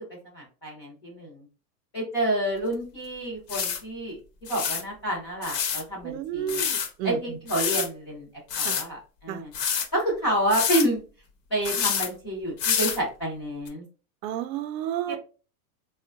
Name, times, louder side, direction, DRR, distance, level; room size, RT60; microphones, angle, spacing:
voice 1, 0.3-1.5 1.9-4.2 4.5-6.7 7.0-8.3 8.6-9.5 9.9-11.0 11.5-13.8 15.1-15.2, right 1 dB, 20° left, 0.3 m, -29 dB
sound 1, 2.7-2.8 3.5-3.8 4.5-4.8 5.4-5.8 6.5-6.9 7.5-7.9 8.5-8.8 9.5-9.9 10.5-10.9 11.6-12.1 12.6-13.0 13.7-13.8, left 7 dB, 80° left, 0.9 m, -27 dB
voice 2, 6.0-7.2 8.6-8.8 9.3-9.4 14.2-15.2, right 10 dB, 90° right, 0.5 m, -31 dB
3.6 x 2.1 x 2.3 m
supercardioid pair, 170°, 49 cm